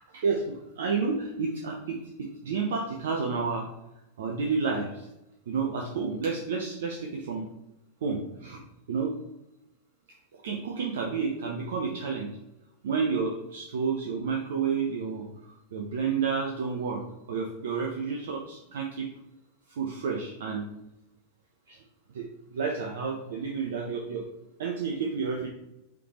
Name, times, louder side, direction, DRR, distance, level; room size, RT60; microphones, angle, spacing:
voice 1, 0.1-3.7 4.2-5.1 5.5-7.5 8.0-8.6 8.9-9.1 10.4-12.3 12.8-15.3 15.7-17.0 17.3-19.1 19.7-20.7 21.7-21.8 22.1-22.2 22.5-24.2 24.6-25.5, right 5 dB, 60° right, 0 dB, 0.6 m, -30 dB
4.9 x 3.4 x 2.9 m, 0.91 s
figure-of-eight pair, 90°, 0 cm